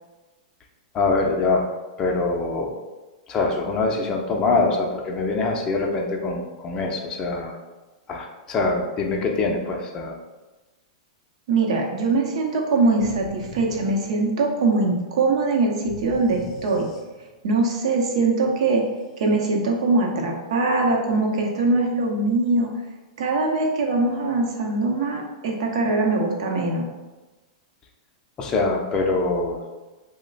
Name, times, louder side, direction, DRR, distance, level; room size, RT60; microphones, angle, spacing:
voice 1, 0.9-1.6 2.0-2.7 3.3-7.6 8.1-10.2 28.4-29.6, left 3 dB, 20° left, 1 dB, 0.5 m, -24 dB
voice 2, 11.5-16.9 17.4-18.8 19.2-22.7 23.2-26.9, right 3 dB, 65° right, 1 dB, 0.7 m, -22 dB
sound 1, 13.0-14.7 15.9-17.5, left 3 dB, 65° left, 0.6 m, -41 dB
3.0 x 2.1 x 3.9 m, 1.2 s
hypercardioid pair, 140°, 4 cm